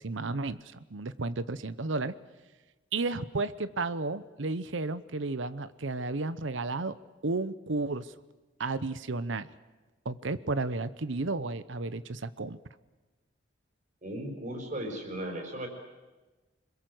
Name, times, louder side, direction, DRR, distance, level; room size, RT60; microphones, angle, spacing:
voice 1, 0.0-2.1 2.9-6.9 7.2-8.1 8.6-9.5 10.0-12.6, right 3 dB, 75° right, 15 dB, 0.9 m, -33 dB
voice 2, 14.0-15.7, right 1 dB, 40° right, 5 dB, 5.1 m, -36 dB
26.0 x 21.5 x 7.9 m, 1.2 s
head